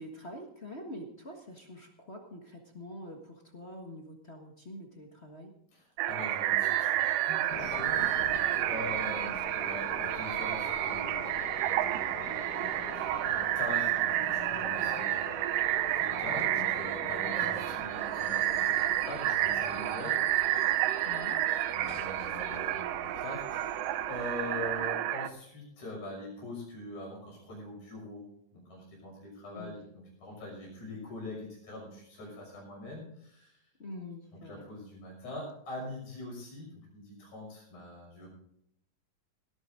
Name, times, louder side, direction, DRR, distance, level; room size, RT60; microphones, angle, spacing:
voice 1, 0.0-5.5 9.0-9.4 21.0-21.4 29.5-29.8 33.8-34.7, left 1 dB, 40° left, 2 dB, 0.9 m, -45 dB
voice 2, 5.7-12.5 12.9-15.4 15.9-20.2 21.7-28.3 28.5-33.6 34.4-38.3, left 1 dB, 60° left, -4 dB, 7.6 m, -43 dB
sound 1, 6.0-25.3, right 13 dB, 80° right, 2.3 m, -30 dB
sound 2, 6.6-13.5 14.7-21.8 22.0-22.8, right 7 dB, 60° right, 1.9 m, -46 dB
sound 3, 7.5-24.9, left 10 dB, 85° left, 2.5 m, -46 dB
18.0 x 12.5 x 3.8 m, 0.73 s
omnidirectional pair, 3.8 m